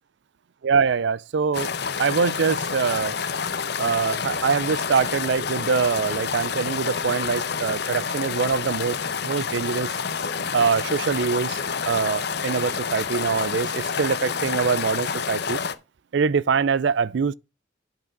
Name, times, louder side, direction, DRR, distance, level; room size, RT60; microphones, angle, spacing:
voice 1, 0.6-1.7 2.0-3.1 3.8-9.0 9.2-9.9 10.5-11.6 11.9-15.6 16.1-17.3, right 5 dB, 60° right, 0.4 m, -24 dB
sound 1, 1.5-15.7, left 6 dB, 55° left, 0.7 m, -28 dB
9.0 x 6.0 x 5.2 m
head